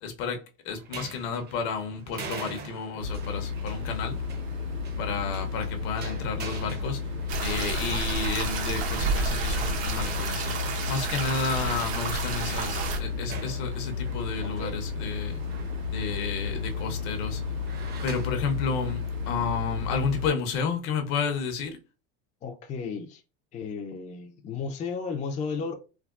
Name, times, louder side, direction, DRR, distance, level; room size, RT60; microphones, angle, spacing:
voice 1, 0.0-4.1 5.0-7.0 7.4-10.5 10.9-15.4 15.9-17.4 18.0-21.8, left 5 dB, 65° left, 0.8 m, -31 dB
sound 1, 0.7-19.4, right 4 dB, 30° right, 0.7 m, -45 dB
sound 2, 3.0-20.3, left 5 dB, 85° right, 1.4 m, -33 dB
sound 3, 7.3-13.0, right 4 dB, 70° right, 1.1 m, -30 dB
voice 2, 22.4-23.2 23.5-25.7, left 5 dB, 25° left, 0.4 m, -33 dB
3.4 x 2.2 x 2.4 m
supercardioid pair, 110°, 32 cm